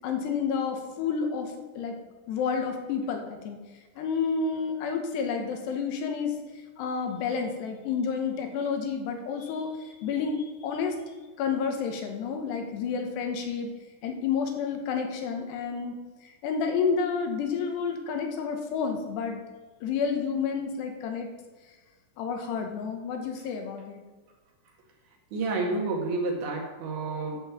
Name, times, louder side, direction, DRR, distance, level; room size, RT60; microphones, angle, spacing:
voice 1, 0.0-2.0 2.3-3.6 4.0-6.3 6.8-11.0 11.4-13.7 14.0-19.4 19.8-21.3 22.2-24.0, left 6 dB, 85° left, 4 dB, 3.4 m, -30 dB
voice 2, 25.3-27.4, right 3 dB, 70° right, -1 dB, 3.7 m, -29 dB
11.0 x 5.5 x 7.3 m, 1.3 s
omnidirectional pair, 4.8 m